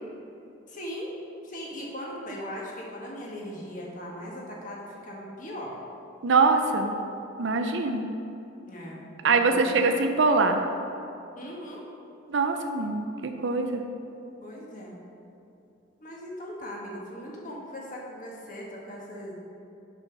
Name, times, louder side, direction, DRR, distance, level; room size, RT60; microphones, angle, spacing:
voice 1, 0.7-1.1 1.4-5.8 8.7-9.7 10.1-10.3 11.4-11.8 14.4-15.0 16.0-19.3, equal, 40° left, -3 dB, 1.5 m, -39 dB
voice 2, 6.2-6.9 7.4-8.1 9.2-10.6 12.3-13.8, right 4 dB, 65° right, 5 dB, 0.5 m, -23 dB
6.7 x 5.6 x 5.9 m, 2.8 s
head